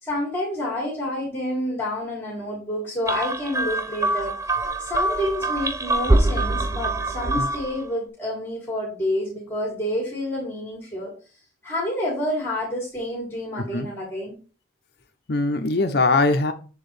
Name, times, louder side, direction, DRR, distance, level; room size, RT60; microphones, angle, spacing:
voice 1, 0.0-4.4 4.8-11.1 11.6-14.3, left 1 dB, 10° left, 2.2 m, -28 dB
sound 1, 3.1-7.8, right 2 dB, 15° right, 0.4 m, -24 dB
voice 2, 13.6-13.9 15.3-16.5, left 3 dB, 55° left, 0.6 m, -21 dB
6.9 x 4.4 x 3.2 m
head